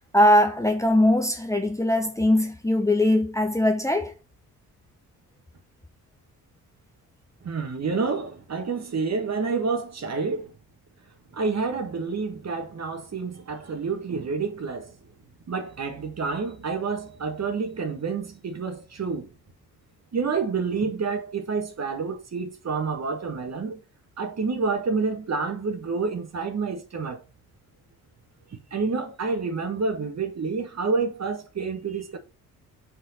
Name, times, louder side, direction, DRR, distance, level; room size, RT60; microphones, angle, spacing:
voice 1, 0.1-4.1, left 1 dB, 5° left, 1.4 m, -21 dB
voice 2, 7.4-10.5 11.3-14.9 15.5-19.3 20.1-23.8 24.2-27.2 28.7-32.2, right 4 dB, 35° right, 1.8 m, -28 dB
5.8 x 5.0 x 6.5 m
figure-of-eight pair, 40°, 45 cm